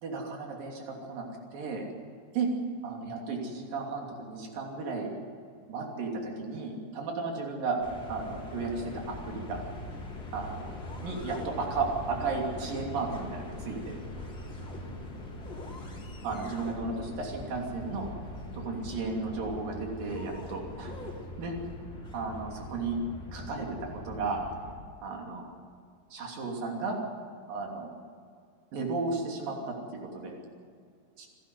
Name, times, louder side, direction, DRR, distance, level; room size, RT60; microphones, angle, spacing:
voice 1, 0.0-1.3 1.5-1.9 2.3-2.5 2.8-5.1 5.7-7.8 8.1-9.6 10.3-10.7 11.0-14.0 16.2-18.1 18.6-20.9 21.4-21.5 22.1-23.0 23.3-24.4 25.0-25.5 26.1-27.0 27.5-27.9 28.7-29.8 30.1-30.4 31.2-31.3, right 4 dB, 85° right, 0 dB, 4.7 m, -34 dB
sound 1, 7.8-24.7, left 1 dB, 35° left, 4.4 m, -42 dB
27.5 x 12.5 x 8.0 m, 2.3 s
omnidirectional pair, 3.9 m